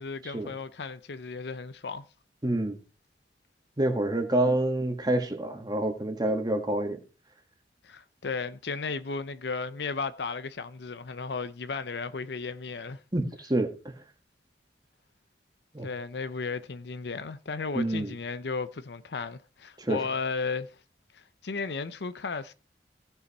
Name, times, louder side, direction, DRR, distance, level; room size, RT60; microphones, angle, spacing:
voice 1, 0.0-2.0 7.8-13.0 15.8-20.8 21.1-22.5, left 4 dB, 70° left, 0.6 m, -34 dB
voice 2, 2.4-2.8 3.8-7.0 13.1-13.7 15.7-15.9 17.7-18.1 19.8-20.0, right 1 dB, 25° right, 1.5 m, -27 dB
16.0 x 5.7 x 4.1 m
head